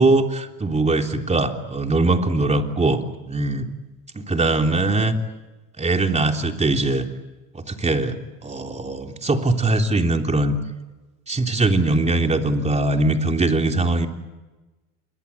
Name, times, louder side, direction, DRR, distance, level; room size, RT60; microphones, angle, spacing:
voice 1, 0.0-3.0 3.3-3.7 4.1-5.2 5.8-7.1 7.5-10.6 11.3-14.1, right 2 dB, 20° right, 4 dB, 3.4 m, -21 dB
28.0 x 22.5 x 8.6 m, 1.2 s
supercardioid pair, 85°, 35 cm